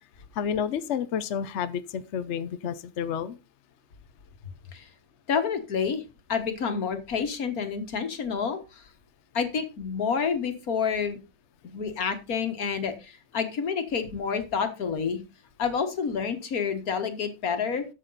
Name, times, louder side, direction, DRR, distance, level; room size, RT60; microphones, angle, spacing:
voice 1, 0.3-3.4, left 8 dB, 60° left, 1.0 m, -30 dB
voice 2, 5.3-6.0 6.3-8.8 9.3-11.2 11.6-15.2 15.6-17.9, left 6 dB, 90° left, 2.0 m, -29 dB
12.0 x 7.4 x 4.0 m
omnidirectional pair, 1.5 m